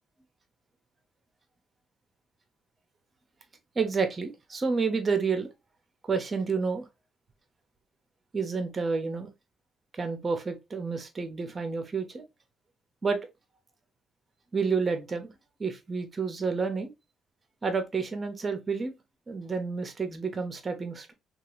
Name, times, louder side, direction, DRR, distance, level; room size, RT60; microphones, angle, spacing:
voice 1, 3.7-5.5 6.1-6.9 8.3-9.3 9.9-12.2 13.0-13.2 14.5-15.3 15.6-16.9 17.6-18.9 19.3-21.1, right 4 dB, 35° right, 0.8 m, -29 dB
2.8 x 2.4 x 3.1 m
cardioid pair, 90°, 0 cm